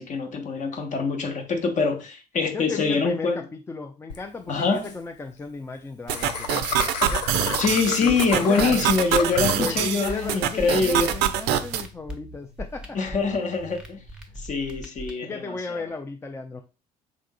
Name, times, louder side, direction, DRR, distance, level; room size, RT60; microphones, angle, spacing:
voice 1, 0.0-3.4 4.5-4.9 7.6-11.1 12.9-14.0 14.4-15.8, left 4 dB, 35° left, 0.9 m, -24 dB
voice 2, 2.5-6.7 7.0-7.3 8.0-8.8 9.5-13.0 14.3-14.4 15.2-16.6, left 4 dB, 10° left, 0.4 m, -35 dB
Laughter, 4.1-4.2 4.5-4.6 4.8-4.9 6.1-9.8, left 6 dB, 75° left, 0.5 m, -32 dB
sound 1, 6.1-11.8, right 10 dB, 50° right, 0.4 m, -25 dB
sound 2, 7.1-15.1, equal, 5° right, 0.8 m, -40 dB
5.0 x 3.6 x 2.2 m
figure-of-eight pair, 55°, 21 cm